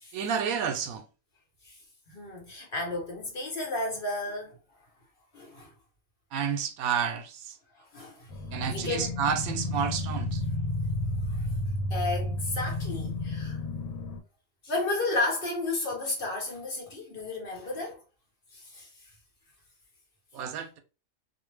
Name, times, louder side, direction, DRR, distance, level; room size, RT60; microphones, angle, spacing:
voice 1, 0.1-1.0 6.3-7.6 8.5-10.4 20.3-20.8, right 7 dB, 85° right, 1.0 m, -30 dB
voice 2, 2.1-4.6 5.3-5.7 7.8-8.3 8.7-9.2 11.3-11.5 11.9-13.6 14.6-18.0 18.5-18.9, left 2 dB, 45° left, 0.9 m, -33 dB
sound 1, 8.3-14.2, left 1 dB, 75° left, 1.0 m, -32 dB
2.5 x 2.1 x 3.2 m
omnidirectional pair, 1.4 m